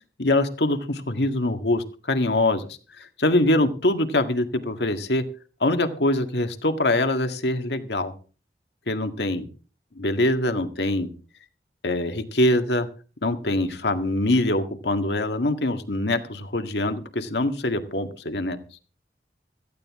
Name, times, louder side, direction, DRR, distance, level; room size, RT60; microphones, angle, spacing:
voice 1, 0.2-2.7 3.0-5.2 5.6-8.1 8.9-9.4 10.0-11.1 11.8-12.9 13.2-18.6, left 1 dB, 75° left, 7 dB, 1.8 m, -24 dB
17.5 x 14.5 x 3.6 m, 0.37 s
head